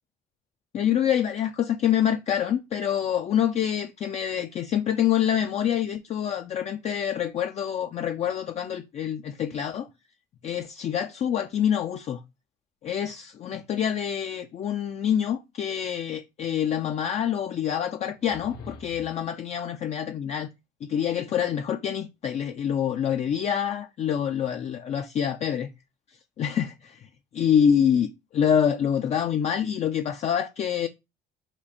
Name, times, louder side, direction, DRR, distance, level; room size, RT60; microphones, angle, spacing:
voice 1, 0.7-9.9 10.4-12.2 12.8-20.5 20.8-25.7 26.4-27.0 27.3-30.9, left 9 dB, 40° left, 0.4 m, -26 dB
sound 1, 18.1-19.3, left 3 dB, 75° left, 1.2 m, -45 dB
4.3 x 2.5 x 4.2 m
cardioid pair, 110°, 17 cm